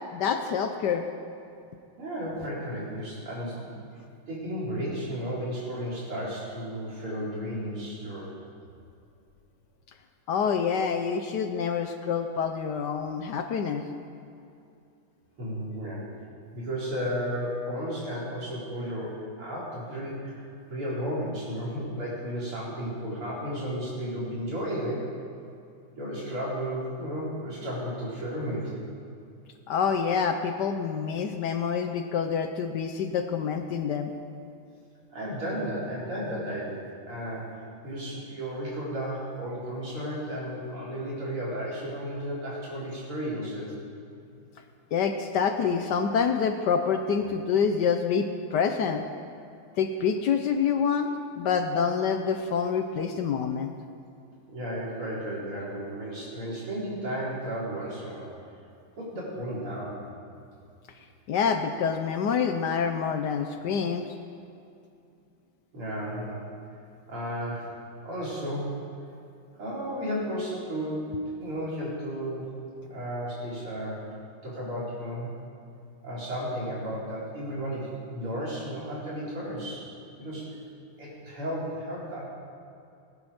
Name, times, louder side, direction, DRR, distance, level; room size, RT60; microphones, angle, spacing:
voice 1, 0.1-1.1 10.3-13.8 29.7-34.1 44.9-49.0 49.7-51.1 51.4-53.7 61.3-64.1, left 6 dB, 65° left, 6 dB, 1.1 m, -27 dB
voice 2, 2.0-3.7 4.3-8.3 15.4-16.0 16.5-25.1 25.9-28.7 35.1-36.8 37.1-43.8 54.5-58.3 59.0-60.0 65.7-66.5 67.1-67.7 68.0-68.8 69.6-74.1 74.4-75.3 76.0-79.8 80.2-80.5 81.0-82.3, equal, 85° right, -7 dB, 4.8 m, -33 dB
18.5 x 10.5 x 5.0 m, 2.5 s
omnidirectional pair, 2.3 m